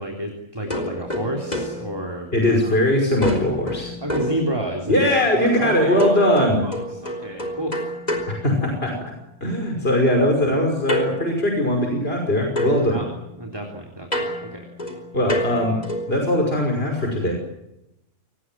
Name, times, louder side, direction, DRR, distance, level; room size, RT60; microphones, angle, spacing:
voice 1, 0.0-2.7 4.0-7.8 12.9-13.1 13.4-14.7, right 1 dB, 20° right, 1 dB, 3.6 m, -30 dB
sound 1, 0.7-2.8 3.2-5.1 6.0-9.2 10.9-12.3 12.6-16.2, left 1 dB, 30° left, 4.5 m, -30 dB
voice 2, 2.3-3.9 4.9-6.6 8.3-9.1 9.4-13.0 15.1-15.8 16.1-17.3, left 1 dB, 50° left, 2 dB, 5.9 m, -20 dB
27.0 x 20.0 x 7.6 m, 0.86 s
omnidirectional pair, 1.3 m